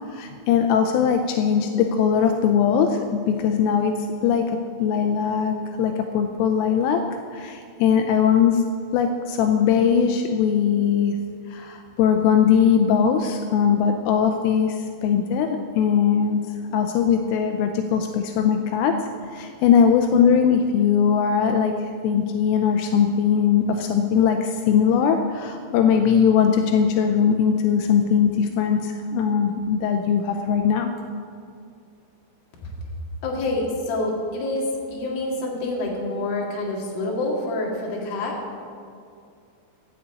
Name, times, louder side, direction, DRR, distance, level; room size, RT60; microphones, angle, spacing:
voice 1, 0.1-3.9 4.2-4.5 4.8-7.0 7.3-8.6 8.9-11.2 11.5-16.4 16.7-18.9 19.3-21.7 22.0-30.9, left 7 dB, 85° left, 5 dB, 3.1 m, -20 dB
voice 2, 33.2-34.7 34.9-38.3, left 2 dB, 55° left, -2 dB, 3.3 m, -27 dB
13.0 x 7.0 x 8.2 m, 2.3 s
omnidirectional pair, 6.0 m